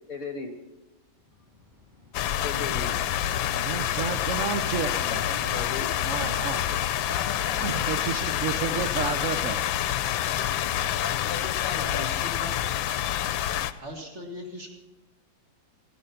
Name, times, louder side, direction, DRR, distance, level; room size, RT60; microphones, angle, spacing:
voice 1, 0.1-0.5 2.4-3.0 5.1-5.9 7.1-7.8 8.2-8.5 11.0-12.0, left 4 dB, 55° left, 7 dB, 1.2 m, -37 dB
Bicycle, 1.0-8.5, left 2 dB, 10° right, 2.6 m, -53 dB
sound 1, 2.1-13.7, left 11 dB, 85° left, 1.4 m, -27 dB
voice 2, 3.6-5.2 6.0-6.6 7.6-9.7, right 7 dB, 70° right, 7 dB, 0.7 m, -31 dB
voice 3, 5.2-5.9 6.2-6.4 8.6-9.3 11.6-12.9 13.8-14.7, equal, 35° right, 1 dB, 2.1 m, -41 dB
15.0 x 11.5 x 5.7 m, 1.1 s
omnidirectional pair, 2.1 m